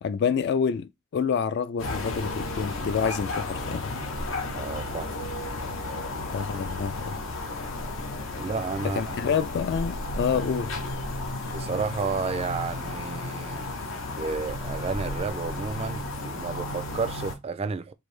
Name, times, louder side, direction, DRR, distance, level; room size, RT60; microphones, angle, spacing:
voice 1, 0.0-4.1 6.3-7.2 8.8-10.7, left 6 dB, 55° left, 0.3 m, -28 dB
sound 1, 1.8-17.4, left 2 dB, 75° left, 0.9 m, -33 dB
voice 2, 4.5-5.2 8.4-9.3 11.4-13.7 14.2-17.9, right 4 dB, 30° right, 0.3 m, -32 dB
4.6 x 2.6 x 3.2 m
head